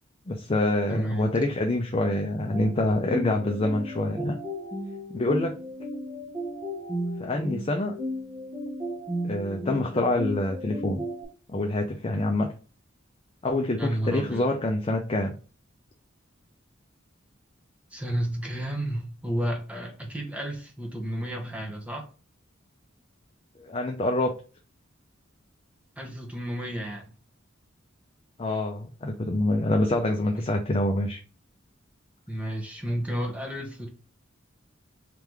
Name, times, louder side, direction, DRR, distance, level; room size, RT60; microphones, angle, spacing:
voice 1, 0.3-4.4 5.1-5.5 7.2-7.9 9.2-11.0 11.5-12.5 13.4-15.3 23.6-24.3 28.4-31.2, left 1 dB, 30° left, 2 dB, 0.5 m, -26 dB
voice 2, 0.9-1.3 13.8-14.4 17.9-22.1 26.0-27.1 30.3-30.5 32.3-33.9, right 1 dB, 5° right, 1 dB, 1.0 m, -31 dB
sound 1, 2.5-11.2, equal, 30° right, 1.5 m, -34 dB
3.7 x 3.4 x 3.1 m, 0.36 s
head